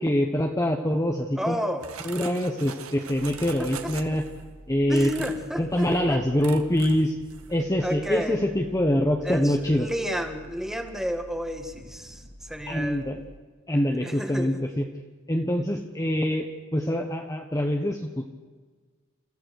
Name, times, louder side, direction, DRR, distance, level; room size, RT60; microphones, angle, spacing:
voice 1, 0.0-1.6 2.0-4.2 4.7-5.1 5.5-7.1 7.5-9.9 12.7-13.2 13.7-14.8 15.3-18.3, equal, 15° left, 2 dB, 1.2 m, -25 dB
voice 2, 1.4-2.2 3.6-3.7 4.1-4.2 4.9-6.2 7.8-8.4 9.2-13.0 14.0-14.5, equal, ahead, 5 dB, 1.9 m, -32 dB
sound 1, 1.8-4.4 4.9-5.5 5.8-6.0 6.4-7.1 7.3-7.5, right 6 dB, 70° right, 1.7 m, -41 dB
sound 2, 3.1-13.4, equal, 50° right, 2.6 m, -48 dB
29.0 x 15.0 x 6.6 m, 1.4 s
head